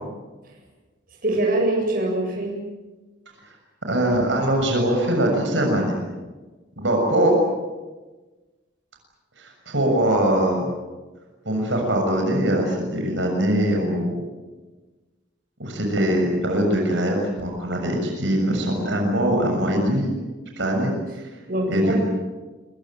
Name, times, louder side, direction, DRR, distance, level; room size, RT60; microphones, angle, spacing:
voice 1, 1.2-2.5 21.5-22.0, right 1 dB, 50° right, 1 dB, 7.9 m, -23 dB
voice 2, 3.9-6.0 6.8-7.4 9.4-10.7 11.4-14.2 15.6-20.1 20.6-21.2 21.7-22.0, right 1 dB, 80° right, 2 dB, 6.8 m, -22 dB
26.5 x 23.5 x 8.0 m, 1.2 s
head